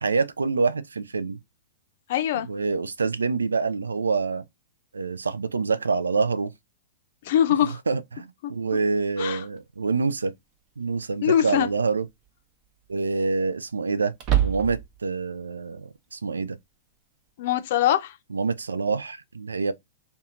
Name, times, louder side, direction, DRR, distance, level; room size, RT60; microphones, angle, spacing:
voice 1, 0.0-1.4 2.4-4.4 4.9-6.5 7.9-10.3 10.8-12.1 12.9-14.1 14.4-16.6 18.3-19.7, right 4 dB, 85° right, 0.3 m, -26 dB
voice 2, 2.1-2.5 7.2-7.8 8.4-8.5 9.2-9.4 11.2-11.7 17.4-18.1, left 10 dB, 55° left, 0.5 m, -22 dB
sound 1, 9.6-9.7 11.5-11.9 12.2-12.3 14.1-15.0, right 12 dB, 40° right, 0.8 m, -25 dB
2.7 x 2.2 x 2.4 m
hypercardioid pair, 110°, 0 cm